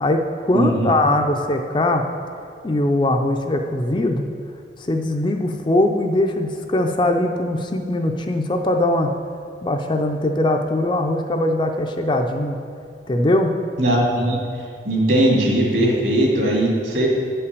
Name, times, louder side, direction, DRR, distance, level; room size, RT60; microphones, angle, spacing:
voice 1, 0.0-2.0 2.6-4.3 4.8-9.1 9.6-12.6 13.1-13.5, left 1 dB, 25° left, 4 dB, 0.4 m, -21 dB
voice 2, 0.5-0.9 13.8-14.4 14.8-17.1, right 1 dB, 60° right, -3 dB, 2.2 m, -19 dB
8.9 x 5.6 x 6.7 m, 2.3 s
head